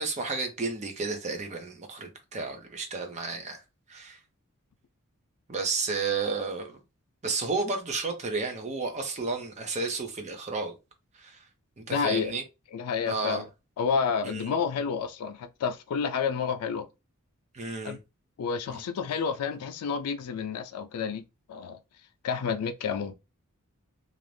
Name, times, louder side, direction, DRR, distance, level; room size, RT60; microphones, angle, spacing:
voice 1, 0.0-3.6 3.9-4.2 5.5-6.8 7.2-10.8 11.2-11.4 11.8-12.4 13.1-13.5 14.2-14.5 17.5-18.0, right 4 dB, 30° right, 0.5 m, -32 dB
voice 2, 11.9-12.3 12.7-13.5 13.8-16.9 17.8-18.0 18.4-21.8 22.2-23.1, left 6 dB, 90° left, 0.4 m, -30 dB
2.5 x 2.0 x 3.1 m
head